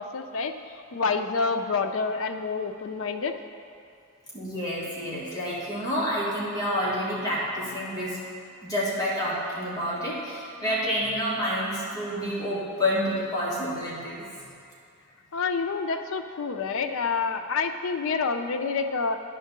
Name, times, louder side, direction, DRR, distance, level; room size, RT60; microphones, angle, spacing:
voice 1, 0.0-3.3 15.3-19.2, left 4 dB, 65° left, 7 dB, 0.5 m, -28 dB
voice 2, 4.3-8.2 8.6-14.5, equal, 20° left, -8 dB, 1.5 m, -29 dB
9.9 x 3.7 x 6.6 m, 2.4 s
head